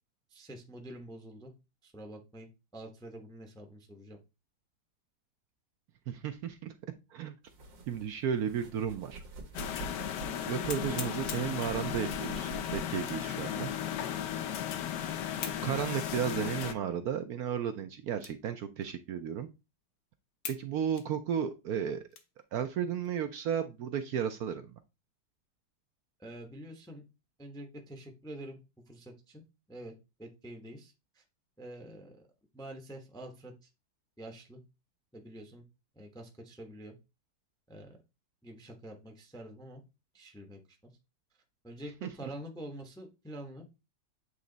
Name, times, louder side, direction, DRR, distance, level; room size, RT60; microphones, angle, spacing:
voice 1, 0.3-1.5 1.8-4.2 26.2-27.0 27.4-28.6 28.9-29.4 29.7-29.9 30.2-31.2 31.6-32.3 32.5-33.5 34.2-34.6 35.1-35.6 35.9-36.9 37.7-38.0 38.4-39.8 40.1-40.6 41.6-43.6, right 1 dB, 5° left, 3 dB, 0.6 m, -46 dB
voice 2, 6.1-6.7 7.1-7.3 7.9-9.2 10.4-13.7 15.6-19.5 20.5-22.0 22.5-24.7 42.0-42.1, right 8 dB, 70° right, 8 dB, 1.0 m, -33 dB
sound 1, 7.5-13.3, right 4 dB, 85° right, 1.8 m, -47 dB
sound 2, 9.3-9.4 9.9-10.0 10.7-11.6 13.0-13.4 13.9-14.0 15.4-15.7 16.3-16.4 17.1-17.2 18.2-18.5 18.8-18.9 19.6-19.7 20.4-20.7 21.0-22.4 22.9-23.1 23.6-24.0, left 6 dB, 65° left, 1.3 m, -43 dB
sound 3, 9.5-16.7, left 10 dB, 80° left, 1.2 m, -35 dB
8.3 x 3.1 x 3.8 m, 0.27 s
omnidirectional pair, 1.9 m